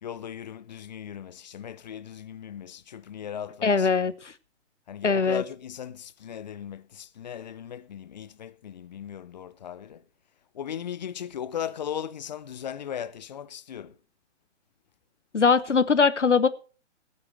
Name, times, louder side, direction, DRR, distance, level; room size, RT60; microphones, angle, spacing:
voice 1, 0.0-3.9 4.9-10.0 10.5-13.9, left 9 dB, 40° left, 0.7 m, -37 dB
voice 2, 3.6-4.3 5.0-5.4 15.3-16.5, left 5 dB, 75° left, 1.1 m, -21 dB
17.0 x 8.8 x 4.5 m
figure-of-eight pair, 125°, 36 cm